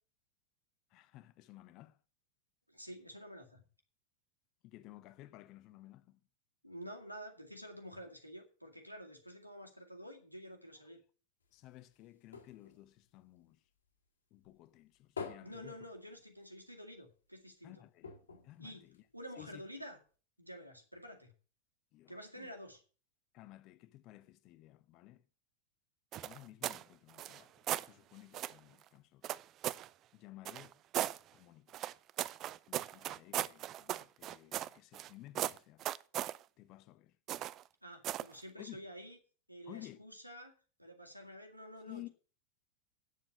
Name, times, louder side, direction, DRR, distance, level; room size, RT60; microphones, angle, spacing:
voice 1, 0.9-2.0 4.6-6.2 11.5-13.6 14.3-15.8 17.6-18.1 18.4-19.0 19.4-19.6 21.9-22.5 23.3-25.2 26.2-29.3 30.1-30.8 31.3-31.8 32.7-35.8 36.6-37.2 38.6-38.8 39.7-40.0 41.9-42.1, left 16 dB, 40° left, 1.0 m, -55 dB
voice 2, 2.7-3.6 6.6-11.0 15.4-17.7 18.6-18.8 19.1-20.0 20.4-21.3 22.1-22.8 37.8-39.2 39.5-40.5 40.8-42.1, equal, 90° right, 2.1 m, -49 dB
sound 1, 11.4-14.1 14.4-16.7 17.0-17.1 17.4-17.5 18.0-19.5 20.1-20.2, left 5 dB, 70° left, 2.5 m, -49 dB
sound 2, 26.1-26.8 27.1-27.9 28.3-28.6 29.2-29.9 30.4-31.2 31.7-35.1 35.3-36.4 37.3-37.6 38.0-38.3, right 13 dB, 35° right, 0.5 m, -37 dB
9.6 x 7.3 x 7.8 m
figure-of-eight pair, 90°, 0 cm